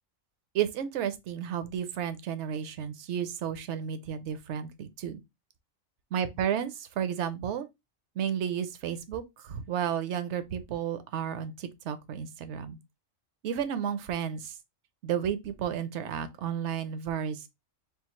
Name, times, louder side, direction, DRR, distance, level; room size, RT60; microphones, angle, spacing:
voice 1, 0.5-5.2 6.1-7.7 8.2-12.8 13.4-14.5 15.0-17.5, right 9 dB, 70° right, 0.9 m, -32 dB
3.8 x 2.3 x 4.3 m
omnidirectional pair, 1.3 m